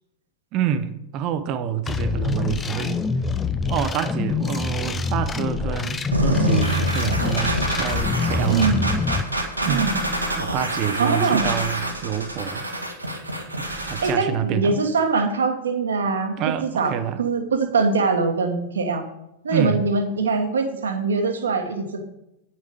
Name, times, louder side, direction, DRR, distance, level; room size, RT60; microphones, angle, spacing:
voice 1, 0.5-3.0 3.7-8.7 9.6-9.9 10.4-12.6 13.6-14.8 16.4-17.2 19.5-19.8, right 9 dB, 40° right, 11 dB, 0.9 m, -27 dB
sound 1, 1.9-9.2, left 4 dB, 20° left, 0.6 m, -25 dB
sound 2, 6.1-14.1, equal, 85° right, 1.5 m, -26 dB
voice 2, 8.5-8.9 9.6-9.9 11.0-11.5 14.0-16.3 16.6-16.9 17.2-19.0 19.4-22.0, right 4 dB, 70° right, 5 dB, 1.5 m, -22 dB
8.9 x 7.0 x 5.2 m, 0.84 s
figure-of-eight pair, 90°, 0 cm